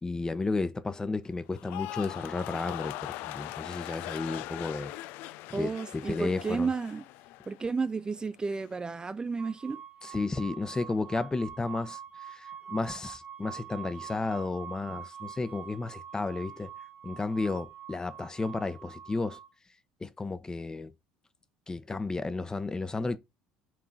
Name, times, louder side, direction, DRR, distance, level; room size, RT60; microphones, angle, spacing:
voice 1, 0.0-4.9 5.5-6.7 10.0-12.0 12.3-16.7 17.0-19.4 20.0-20.9 21.7-23.2, left 3 dB, 20° left, 0.8 m, -33 dB
sound 1, 1.5-7.8 8.1-8.7, left 16 dB, 65° left, 0.4 m, -40 dB
voice 2, 5.5-7.0 7.5-9.8, right 4 dB, 25° right, 0.5 m, -32 dB
sound 2, 9.4-19.5, right 9 dB, 45° right, 1.7 m, -45 dB
6.0 x 3.7 x 5.7 m
hypercardioid pair, 65°, 4 cm